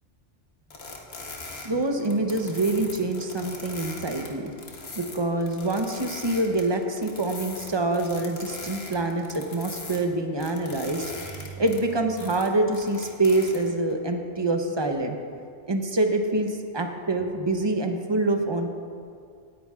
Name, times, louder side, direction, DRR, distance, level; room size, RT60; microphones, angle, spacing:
sound 1, 0.7-10.0 10.4-13.9, left 3 dB, 60° left, 1.4 m, -40 dB
voice 1, 1.6-4.5 5.0-15.2 15.7-18.7, right 2 dB, 25° right, 4 dB, 0.7 m, -26 dB
17.0 x 9.9 x 2.4 m, 2.2 s
omnidirectional pair, 1.2 m